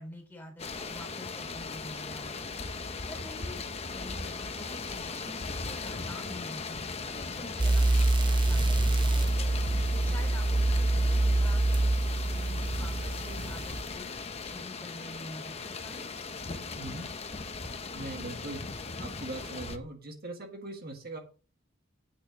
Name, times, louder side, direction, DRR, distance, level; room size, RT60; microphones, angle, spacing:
voice 1, 0.0-2.4 3.1-6.8 7.1-9.6 10.0-14.1 14.4-16.1, left 1 dB, 10° left, 3 dB, 3.9 m, -47 dB
sound 1, 0.6-19.8, left 4 dB, 30° left, 0.9 m, -38 dB
sound 2, 7.6-13.8, right 2 dB, 25° right, 0.5 m, -26 dB
voice 2, 16.7-17.1 17.9-18.6 19.0-21.2, right 2 dB, 50° right, 4 dB, 1.7 m, -40 dB
8.7 x 6.7 x 6.2 m, 0.36 s
head